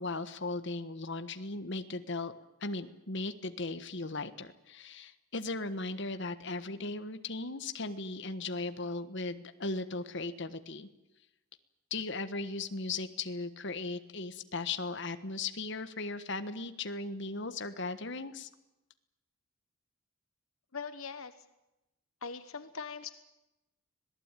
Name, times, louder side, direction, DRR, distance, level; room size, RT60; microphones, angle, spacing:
voice 1, 0.0-2.3 2.6-10.9 11.9-18.5, left 3 dB, 55° left, 10 dB, 1.4 m, -37 dB
voice 2, 20.7-21.3 22.2-23.1, left 5 dB, 70° left, 11 dB, 1.2 m, -41 dB
26.0 x 18.5 x 9.1 m, 0.95 s
head